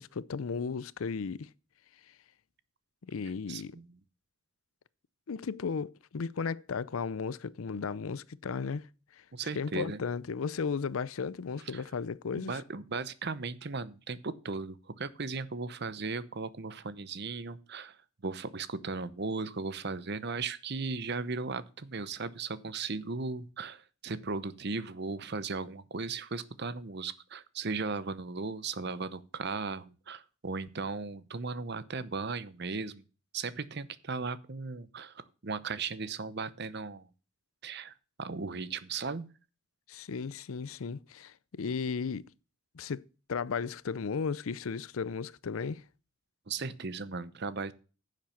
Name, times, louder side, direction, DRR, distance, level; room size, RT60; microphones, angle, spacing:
voice 1, 0.0-1.5 3.0-3.8 5.3-8.9 9.2-9.3 9.6-12.6 39.9-42.3 42.7-43.0 43.3-45.8, left 5 dB, 80° left, 0.5 m, -35 dB
voice 2, 3.5-3.9 9.3-10.0 11.7-11.8 12.5-18.0 18.2-33.0 33.3-37.1 37.6-37.9 38.2-39.3 46.5-47.7, right 4 dB, 50° right, 0.8 m, -37 dB
10.5 x 7.5 x 5.8 m
head